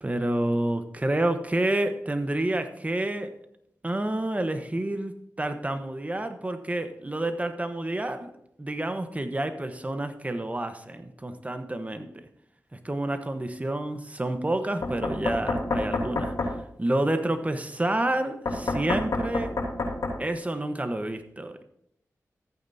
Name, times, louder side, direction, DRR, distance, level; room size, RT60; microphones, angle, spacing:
voice 1, 0.0-3.4 3.8-8.3 8.6-12.2 12.7-16.3 16.8-19.6 20.2-21.6, right 1 dB, 25° right, 1.1 m, -29 dB
Knock, 14.8-16.5 18.5-20.2, left 2 dB, 80° left, 3.1 m, -27 dB
14.0 x 8.9 x 2.8 m
cardioid pair, 55°, 6 cm